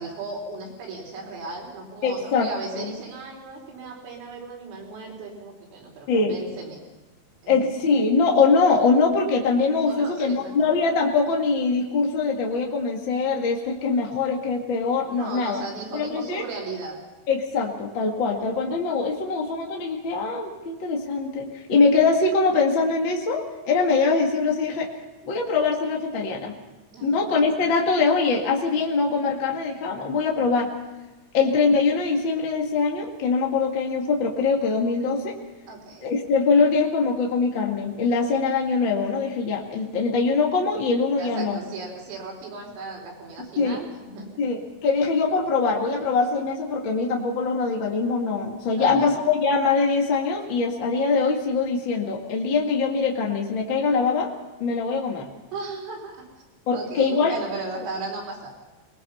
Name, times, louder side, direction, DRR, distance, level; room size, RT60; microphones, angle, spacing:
voice 1, 0.0-6.8 7.4-7.7 9.9-10.7 15.1-17.0 26.9-27.3 35.7-36.1 41.2-44.3 48.7-49.1 55.5-56.2 56.7-58.5, right 3 dB, 85° right, -1 dB, 7.1 m, -36 dB
voice 2, 2.0-2.8 6.1-6.4 7.5-15.6 15.9-16.4 17.3-24.9 25.2-26.5 27.0-30.7 31.3-35.4 36.0-41.6 43.4-43.8 44.4-54.3 54.6-55.3 56.7-57.3, left 4 dB, 50° left, 1 dB, 1.4 m, -23 dB
23.0 x 21.0 x 5.6 m, 1.1 s
omnidirectional pair, 5.7 m